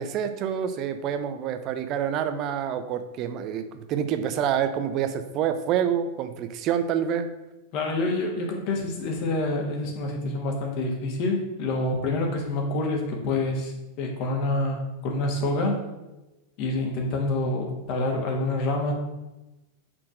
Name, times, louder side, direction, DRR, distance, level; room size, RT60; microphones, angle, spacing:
voice 1, 0.0-7.3, right 8 dB, 35° right, 9 dB, 0.7 m, -27 dB
voice 2, 7.7-13.7 14.0-15.8 16.6-18.9, left 2 dB, 45° left, 1 dB, 1.6 m, -27 dB
5.9 x 4.3 x 6.3 m, 1.0 s
figure-of-eight pair, 90°, 0 cm